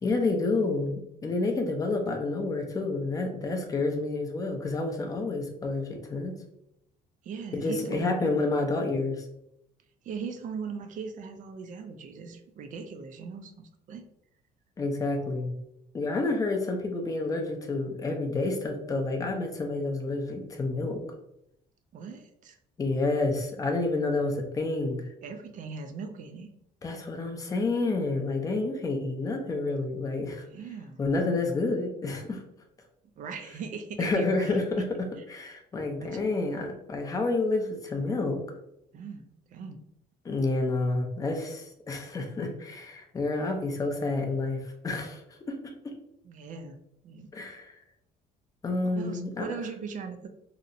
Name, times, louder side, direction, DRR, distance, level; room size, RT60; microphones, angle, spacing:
voice 1, 0.0-6.3 7.5-9.2 14.8-15.5 15.9-21.0 22.8-25.0 26.8-30.5 31.0-32.4 34.0-34.9 35.3-38.4 40.2-45.2 45.5-45.6 45.8-45.9 47.3-47.7 48.6-49.4, left 3 dB, 20° left, 3 dB, 0.4 m, -29 dB
voice 2, 7.2-8.4 10.0-14.0 21.9-22.6 25.2-26.5 30.5-31.0 33.2-34.8 36.0-36.2 38.9-39.8 46.2-46.8 47.0-47.3 48.8-50.3, right 5 dB, 50° right, 7 dB, 0.4 m, -39 dB
2.7 x 2.0 x 2.5 m, 0.79 s
cardioid pair, 110°, 17 cm